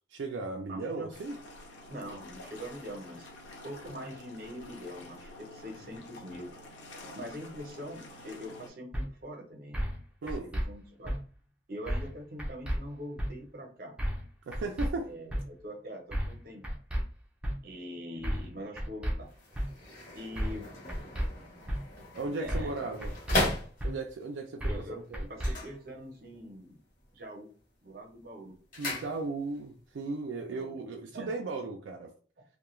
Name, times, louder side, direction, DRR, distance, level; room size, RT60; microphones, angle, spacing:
voice 1, 0.0-1.4 10.2-10.5 14.5-15.1 22.1-23.2 23.8-25.3 28.8-32.1, right 3 dB, 85° right, 0.4 m, -36 dB
voice 2, 0.7-1.1 1.9-3.3 3.6-6.5 7.1-9.9 10.2-11.2 11.7-13.9 15.1-16.6 17.6-19.3 20.1-20.7 22.4-22.8 24.7-25.0 25.3-26.8 27.1-27.5 27.8-28.6 30.5-30.8 31.1-31.3, equal, 55° right, 0.7 m, -43 dB
sound 1, 1.1-8.7, left 1 dB, 85° left, 0.6 m, -49 dB
sound 2, 8.9-9.1 9.7-10.0 10.3-10.6 11.0-11.2 11.9-12.1 12.4-12.8 13.2-13.3 14.0-14.3 14.5-14.9 15.3-15.4 16.1-16.4 16.6-17.0 17.4-17.5 18.2-18.5 18.8-19.1 19.5-19.7 20.4-20.6 20.9-21.3 21.7-21.8 22.5-22.7 23.0-23.4 23.8-23.9 24.6-24.9 25.1-25.5, equal, 5° right, 0.4 m, -31 dB
sound 3, 19.2-24.3 25.3-26.4 26.7-27.2 27.6-29.7 29.9-30.0, left 2 dB, 45° left, 0.9 m, -37 dB
2.3 x 2.1 x 3.0 m
head